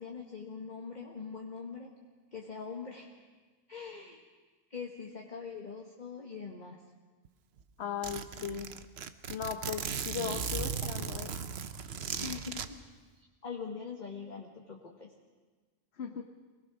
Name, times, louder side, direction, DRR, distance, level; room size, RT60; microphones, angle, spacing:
voice 1, 0.0-1.9 2.3-3.1 3.7-4.2 4.7-6.8 12.2-12.8 13.4-15.1, left 5 dB, 40° left, -1 dB, 1.5 m, -42 dB
Zipper (clothing), 7.2-7.3 7.6-7.7 8.0-12.7, right 6 dB, 60° right, 1.0 m, -37 dB
voice 2, 7.8-8.7 9.3-11.4 16.0-16.2, left 8 dB, 60° left, 5 dB, 1.1 m, -38 dB
24.5 x 18.5 x 6.0 m, 1.4 s
omnidirectional pair, 1.3 m